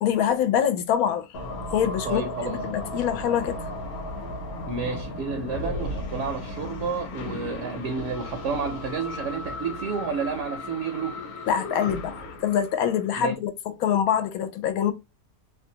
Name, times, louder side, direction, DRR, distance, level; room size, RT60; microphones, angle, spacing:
voice 1, 0.0-1.3 1.7-2.2 2.5-3.6 11.5-14.9, left 9 dB, 90° left, 1.0 m, -25 dB
sound 1, 1.3-13.3, left 2 dB, 55° left, 0.8 m, -35 dB
voice 2, 2.0-2.6 4.6-11.2 13.2-13.4, right 5 dB, 70° right, 0.8 m, -30 dB
2.6 x 2.2 x 2.7 m
omnidirectional pair, 1.5 m